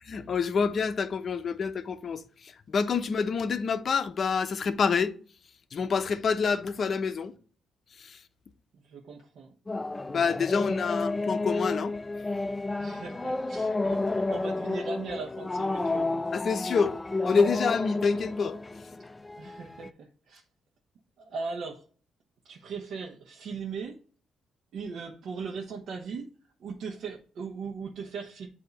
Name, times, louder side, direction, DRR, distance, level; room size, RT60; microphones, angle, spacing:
voice 1, 0.1-5.1 5.7-7.3 8.0-8.2 10.1-11.9 16.3-17.0 17.2-18.6, left 5 dB, 50° left, 0.7 m, -27 dB
voice 2, 8.7-9.5 12.8-16.3 19.4-20.4 21.2-21.8 22.4-24.0 24.7-26.3 26.6-28.5, right 5 dB, 70° right, 1.0 m, -38 dB
sound 1, 9.7-19.9, left 2 dB, 15° left, 0.4 m, -31 dB
8.1 x 2.8 x 5.2 m
cardioid pair, 90°, 0 cm